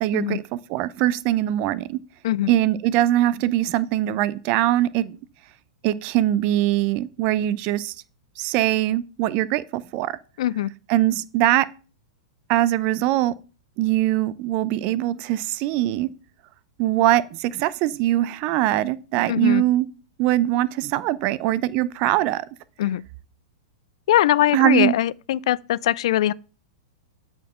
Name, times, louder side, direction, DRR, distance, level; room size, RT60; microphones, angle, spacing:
voice 1, 0.0-0.4 0.7-2.0 2.5-5.2 5.8-7.9 8.4-10.1 10.9-11.7 12.5-13.3 13.8-16.1 16.8-19.9 20.2-22.4 24.5-24.9, right 14 dB, 45° right, 0.6 m, -22 dB
voice 2, 10.4-10.7 19.3-19.6 22.8-23.0 24.1-26.3, left 13 dB, 65° left, 0.4 m, -21 dB
8.2 x 4.5 x 5.7 m
hypercardioid pair, 115°, 3 cm